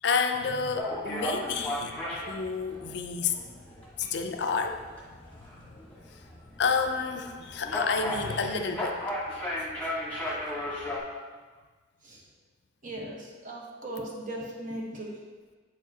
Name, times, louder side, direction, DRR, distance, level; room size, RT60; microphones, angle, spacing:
voice 1, 0.0-3.4 4.0-4.9 5.5-5.7 6.6-9.0 10.3-10.6, left 5 dB, 60° left, 6 dB, 0.4 m, -30 dB
sound 1, 0.8-11.0, left 1 dB, 10° left, 1.2 m, -36 dB
voice 2, 12.8-15.1, right 1 dB, 45° right, -2 dB, 1.1 m, -38 dB
8.2 x 4.6 x 2.8 m, 1.4 s
head